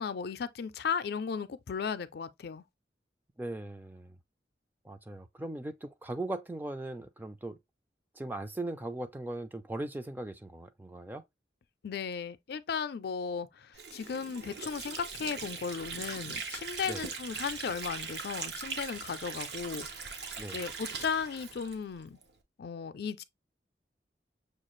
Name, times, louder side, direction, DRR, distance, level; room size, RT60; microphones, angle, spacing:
voice 1, 0.0-2.6 11.8-19.9 20.5-22.2 22.6-23.2, left 6 dB, 60° left, 0.4 m, -36 dB
voice 2, 3.4-4.2 4.8-7.6 8.1-11.2 16.8-17.0 20.4-20.6, right 2 dB, 10° right, 0.4 m, -39 dB
Water / Sink (filling or washing), 13.7-22.3, right 5 dB, 65° right, 0.8 m, -40 dB
6.4 x 2.4 x 3.0 m
head